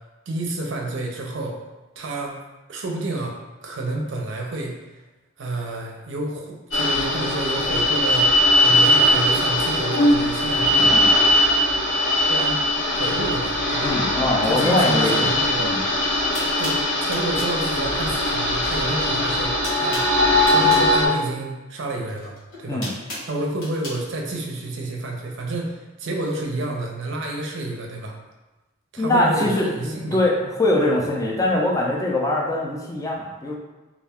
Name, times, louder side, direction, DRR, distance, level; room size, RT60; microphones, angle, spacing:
voice 1, 0.3-1.6 2.0-2.4 2.7-4.8 5.4-10.9 12.3-13.9 14.5-15.7 16.3-20.1 20.5-22.8 23.3-28.2 28.9-30.2, right 2 dB, 60° right, 0 dB, 0.5 m, -29 dB
sound 1, 6.7-21.1, left 1 dB, 60° left, 0.7 m, -20 dB
voice 2, 13.8-15.2 15.6-15.8 22.7-22.9 29.0-33.6, left 1 dB, 15° left, -2 dB, 0.3 m, -22 dB
sound 2, 15.8-15.9 16.3-17.6 18.8-19.1 19.3-20.9 22.1-24.0, left 1 dB, 75° left, 1.1 m, -35 dB
2.3 x 2.2 x 3.4 m, 1.1 s
head